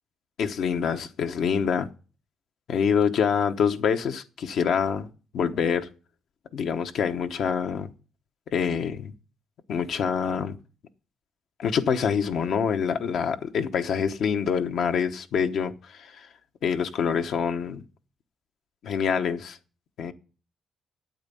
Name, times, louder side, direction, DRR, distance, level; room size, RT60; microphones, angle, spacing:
voice 1, 0.4-1.9 2.7-5.1 5.3-5.9 6.5-7.9 8.5-9.1 9.7-10.5 11.6-16.3 16.6-17.8 18.8-19.6 20.0-20.1, left 7 dB, 70° left, 1.0 m, -26 dB
8.9 x 8.3 x 7.0 m
cardioid pair, 90°, 0 cm